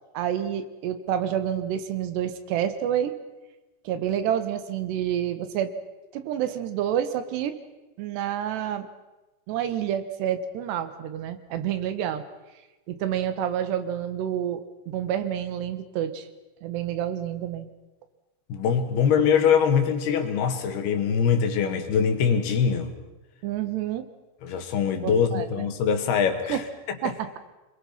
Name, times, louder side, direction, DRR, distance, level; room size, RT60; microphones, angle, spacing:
voice 1, 0.2-3.2 3.9-5.7 6.1-7.6 8.0-8.9 9.5-12.2 12.9-16.3 16.6-17.7 23.4-24.1 25.0-25.5 26.5-26.6 27.0-27.4, right 10 dB, 80° right, 10 dB, 3.5 m, -28 dB
voice 2, 18.5-22.9 24.4-26.6 27.1-27.2, left 7 dB, 70° left, 6 dB, 3.6 m, -23 dB
26.5 x 22.0 x 5.9 m, 1.1 s
omnidirectional pair, 4.8 m